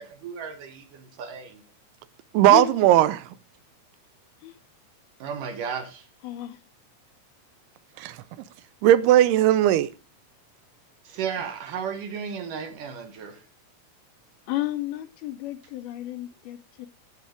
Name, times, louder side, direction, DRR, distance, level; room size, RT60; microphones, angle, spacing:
voice 1, 0.0-1.6 5.2-6.1 11.0-13.4, right 7 dB, 65° right, 2.4 m, -34 dB
voice 2, 2.3-3.2 8.0-8.2 8.8-9.9, right 13 dB, 80° right, 2.5 m, -17 dB
voice 3, 6.2-6.6 14.5-16.9, left 15 dB, 80° left, 2.3 m, -32 dB
15.5 x 5.3 x 5.0 m
omnidirectional pair, 4.7 m